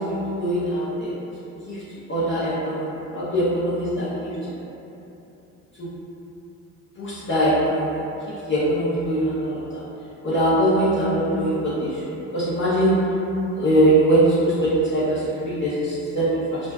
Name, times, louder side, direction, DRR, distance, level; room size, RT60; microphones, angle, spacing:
voice 1, 0.1-1.1 1.7-1.8 2.1-4.3 5.8-5.9 7.0-8.0 8.5-9.8 10.2-12.0 12.3-12.9 13.5-16.6, right 1 dB, 40° left, -10 dB, 0.7 m, -22 dB
2.5 x 2.2 x 3.3 m, 2.9 s
cardioid pair, 90°, 30 cm